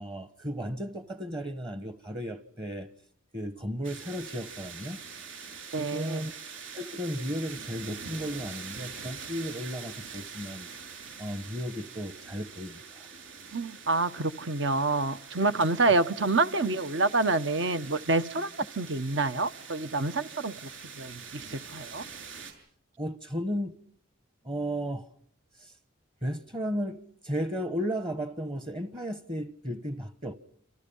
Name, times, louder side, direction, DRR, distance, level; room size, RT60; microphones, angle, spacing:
voice 1, 0.0-2.9 3.3-5.0 5.7-6.3 6.7-10.7 11.2-13.1 23.0-23.8 24.4-25.1 25.5-25.7 26.2-30.3, equal, 25° right, 1.2 m, -34 dB
sound 1, 3.8-22.5, right 6 dB, 80° right, 7.3 m, -44 dB
voice 2, 5.7-6.2 13.5-18.5 18.8-20.5 21.0-22.0, right 3 dB, 65° right, 1.3 m, -27 dB
28.5 x 28.5 x 5.6 m
head